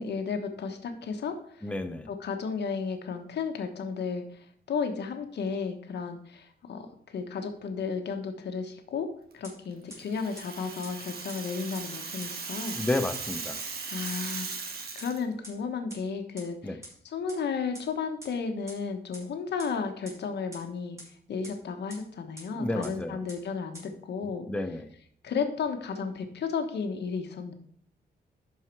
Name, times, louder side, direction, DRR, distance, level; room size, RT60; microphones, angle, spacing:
voice 1, 0.0-1.6 2.1-9.1 9.3-12.8 13.9-16.8 17.0-21.0 21.3-24.5 25.2-27.5, left 5 dB, 80° left, 5 dB, 1.3 m, -33 dB
voice 2, 1.6-2.1 12.7-13.6 16.6-16.8 22.5-23.2 24.5-24.9, left 2 dB, 5° left, 7 dB, 0.6 m, -31 dB
sound 1, 9.4-9.5 9.9-10.0 10.4-10.5 10.8-10.9 11.3-11.4 11.7-11.8 12.2-12.3 12.7-12.8 13.1-13.2 13.6-13.7 14.0-14.1 14.5-14.6 15.0-15.1 15.4-15.5 15.9-16.0 16.4-16.5 16.8-16.9 17.3-17.4 17.7-17.8 18.2-18.3 18.7-18.8 19.1-19.2 19.6-19.7 20.0-20.1 20.5-20.6 21.0-21.1 21.4-21.5 21.9-22.0 22.4-22.5 22.8-22.9 23.3-23.4 23.7-23.8, right 1 dB, 15° right, 4.1 m, -43 dB
Rattle (instrument), 10.0-15.2, right 5 dB, 65° right, 1.4 m, -38 dB
11.5 x 4.8 x 4.5 m, 0.63 s
wide cardioid pair, 165°, 17 cm